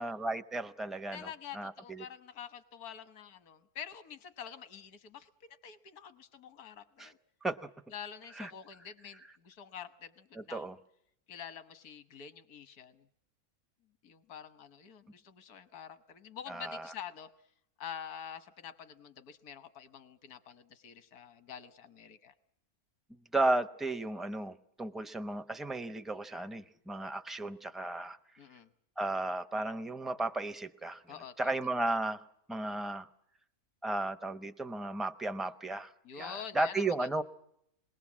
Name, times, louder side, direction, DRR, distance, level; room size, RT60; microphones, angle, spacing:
voice 1, 0.0-2.0 7.0-7.1 7.4-7.7 8.4-8.5 10.3-10.8 16.5-16.9 23.3-28.2 29.0-31.0 31.4-32.2 32.5-33.1 33.8-37.2, right 2 dB, ahead, 8 dB, 0.3 m, -34 dB
voice 2, 1.1-7.2 7.9-10.6 11.3-13.1 14.0-17.3 17.8-22.3 28.4-28.7 31.1-31.5 36.0-37.2, left 8 dB, 80° left, 11 dB, 1.6 m, -47 dB
27.5 x 21.0 x 7.3 m, 0.76 s
omnidirectional pair, 1.6 m